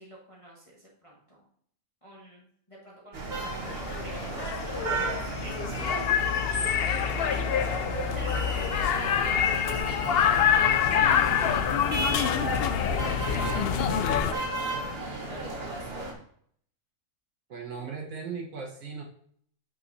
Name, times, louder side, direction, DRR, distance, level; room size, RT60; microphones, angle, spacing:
voice 1, 0.0-1.4 2.0-7.4 8.1-11.3 12.8-16.2, right 1 dB, 25° left, -5 dB, 1.3 m, -46 dB
sound 1, 3.1-16.1, right 2 dB, 45° right, 1.4 m, -34 dB
sound 2, 3.6-14.3, left 8 dB, 75° left, 0.5 m, -26 dB
voice 2, 6.5-6.8 7.1-7.5 13.0-13.8 17.5-19.0, right 5 dB, 65° right, 0 dB, 1.7 m, -40 dB
8.9 x 5.9 x 2.7 m, 0.64 s
omnidirectional pair, 1.5 m